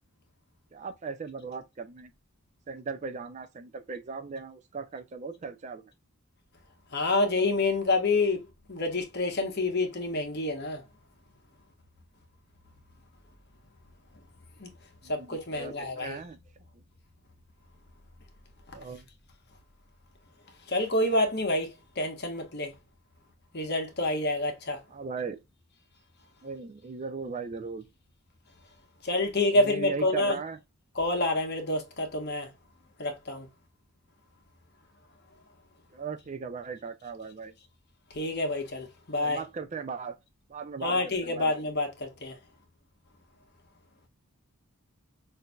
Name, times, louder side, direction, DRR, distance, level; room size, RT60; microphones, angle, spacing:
voice 1, 0.7-2.1 2.7-5.8 15.0-16.4 18.7-19.1 24.9-25.4 26.4-27.9 29.5-30.6 35.9-37.5 39.2-40.2 40.5-41.5, right 5 dB, 30° right, 0.4 m, -38 dB
voice 2, 6.9-10.8 14.6-14.7 15.0-16.2 20.7-22.7 23.5-24.8 29.0-30.4 30.9-32.5 33.0-33.5 38.1-39.4 40.8-42.4, left 2 dB, 45° left, 1.1 m, -28 dB
5.6 x 2.6 x 2.3 m
head